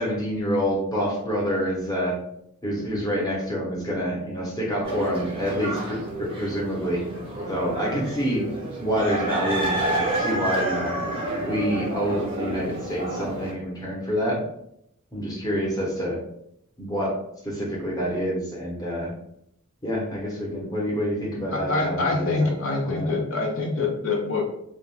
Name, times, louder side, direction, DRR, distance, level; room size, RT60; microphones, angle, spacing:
voice 1, 0.0-2.1 2.6-7.0 7.5-8.4 8.8-10.9 11.5-14.4 15.1-16.2 16.8-17.1 17.4-19.1 19.8-22.5 22.8-23.1, equal, 15° left, -4 dB, 0.8 m, -27 dB
sound 1, 4.8-13.5, right 1 dB, 25° right, 0.5 m, -29 dB
voice 2, 21.5-24.4, left 3 dB, 60° left, 0 dB, 0.5 m, -25 dB
2.4 x 2.2 x 3.1 m, 0.77 s
head